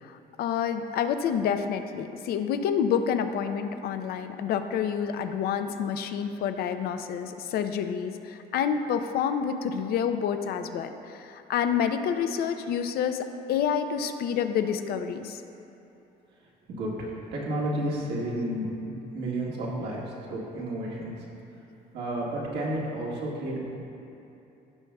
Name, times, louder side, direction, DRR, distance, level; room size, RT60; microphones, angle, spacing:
voice 1, 0.0-15.4, left 7 dB, 65° left, 8 dB, 0.5 m, -28 dB
voice 2, 16.7-20.0 20.3-21.1 21.9-23.6, right 1 dB, 80° right, -5 dB, 1.7 m, -31 dB
15.5 x 5.4 x 2.3 m, 2.8 s
cardioid pair, 110°, 17 cm